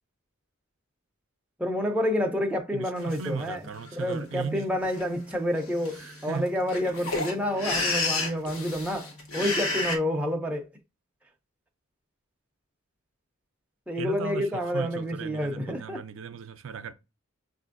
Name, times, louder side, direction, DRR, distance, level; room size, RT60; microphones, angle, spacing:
voice 1, 1.6-3.6 3.9-10.7 13.9-16.0, left 1 dB, 5° right, 0.5 m, -29 dB
voice 2, 2.7-4.7 6.0-6.5 14.0-16.9, right 5 dB, 60° right, 0.4 m, -36 dB
sound 1, 3.1-3.2 3.7-4.1 4.8-5.0 5.3-5.4 5.6-10.0, left 3 dB, 75° left, 1.0 m, -31 dB
6.4 x 2.5 x 2.5 m
head